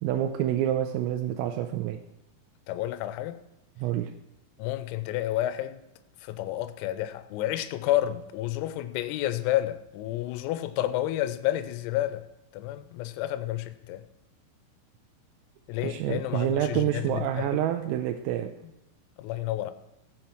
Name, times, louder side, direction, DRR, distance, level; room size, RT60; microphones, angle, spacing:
voice 1, 0.0-2.0 3.8-4.1 15.8-18.5, right 11 dB, 90° right, 3.3 m, -28 dB
voice 2, 2.7-3.4 4.6-5.8 6.2-12.2 12.5-14.0 15.7-17.6 19.2-19.7, left 14 dB, 90° left, 3.4 m, -30 dB
15.5 x 8.7 x 4.5 m
omnidirectional pair, 6.0 m